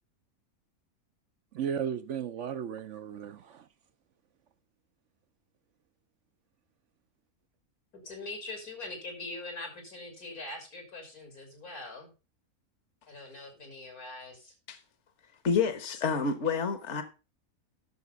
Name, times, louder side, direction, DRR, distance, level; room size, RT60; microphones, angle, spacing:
voice 1, 1.5-3.6, right 8 dB, 65° right, 0.9 m, -35 dB
voice 2, 7.9-12.1 13.1-14.5, left 2 dB, 80° left, 3.8 m, -42 dB
voice 3, 15.4-17.0, left 5 dB, 55° left, 1.5 m, -28 dB
11.0 x 6.7 x 5.1 m
omnidirectional pair, 1.5 m